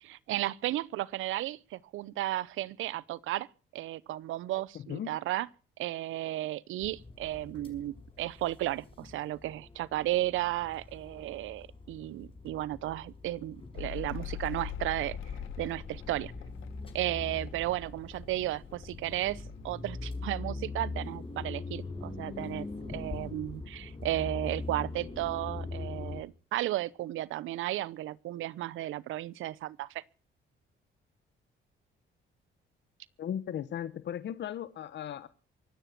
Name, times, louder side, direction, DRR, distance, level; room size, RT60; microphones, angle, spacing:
voice 1, 0.0-3.5 3.7-5.5 5.8-15.2 15.6-16.3 16.9-30.0, right 15 dB, 85° right, 0.8 m, -34 dB
sound 1, 6.8-26.2, left 3 dB, 25° left, 5.3 m, -42 dB
Mechanical fan, 13.8-20.6 20.9-21.7, left 13 dB, 90° left, 1.6 m, -44 dB
voice 2, 33.2-35.3, left 9 dB, 60° left, 1.2 m, -36 dB
24.0 x 9.3 x 6.0 m
cardioid pair, 90°, 20 cm